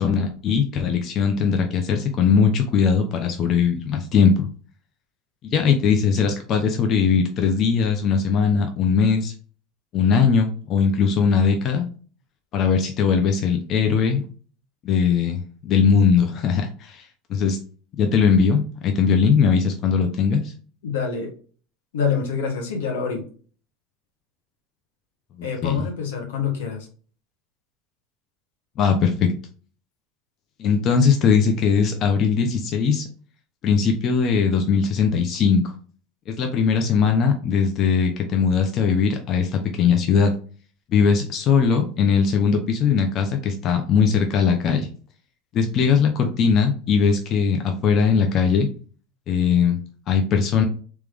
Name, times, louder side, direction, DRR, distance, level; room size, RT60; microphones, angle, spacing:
voice 1, 0.0-4.5 5.5-9.3 9.9-11.9 12.5-14.2 14.8-17.6 18.0-20.5 25.6-25.8 28.8-29.3 30.6-33.0 33.6-35.6 36.3-40.3 40.9-44.9 45.5-48.7 49.3-49.8 50.1-50.6, left 6 dB, 45° left, 5 dB, 0.6 m, -20 dB
voice 2, 20.8-21.3 21.9-23.2 25.4-26.9, left 6 dB, 85° left, 2 dB, 1.3 m, -26 dB
3.5 x 3.0 x 3.4 m, 0.40 s
supercardioid pair, 115°, 0 cm